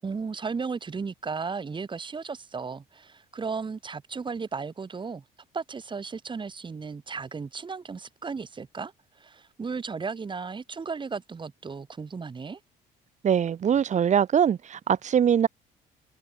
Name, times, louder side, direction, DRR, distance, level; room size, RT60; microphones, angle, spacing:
voice 1, 0.0-5.2 5.5-12.6, right 5 dB, 30° right, 7.5 m, -35 dB
voice 2, 13.2-15.5, right 8 dB, 45° right, 2.6 m, -22 dB
cardioid pair, 110°, 17 cm